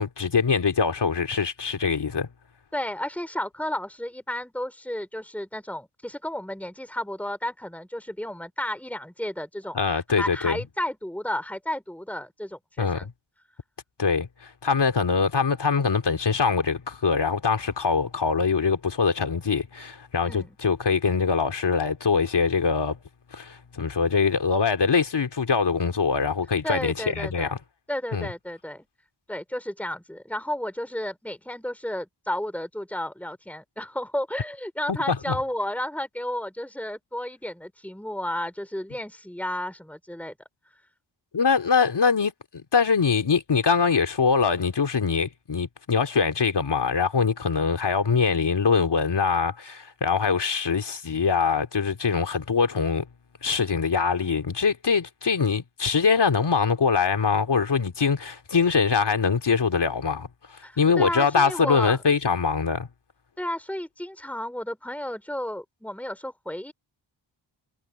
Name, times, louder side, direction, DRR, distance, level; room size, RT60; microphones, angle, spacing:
voice 1, 0.0-2.3 9.7-10.6 12.8-13.1 14.0-14.3 14.6-23.0 23.3-27.6 28.1-28.3 34.9-35.4 41.3-42.3 42.7-53.0 53.4-60.3 60.8-62.9, left 5 dB, 60° left, 2.7 m, -23 dB
voice 2, 2.7-13.1 20.2-20.6 26.6-27.6 27.9-28.9 29.3-40.3 60.6-62.0 63.4-66.7, left 1 dB, 5° left, 3.7 m, -32 dB
cardioid pair, 50°, 47 cm